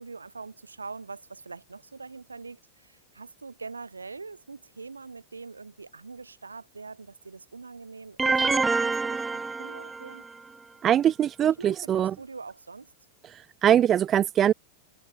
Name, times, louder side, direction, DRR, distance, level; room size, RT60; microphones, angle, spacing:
voice 1, 0.0-10.2 11.4-12.9, right 4 dB, 80° right, 7.5 m, -43 dB
sound 1, 8.2-10.3, right 4 dB, 10° right, 2.7 m, -26 dB
voice 2, 10.8-12.1 13.3-14.5, right 10 dB, 25° right, 0.5 m, -22 dB
figure-of-eight pair, 90°, 0 cm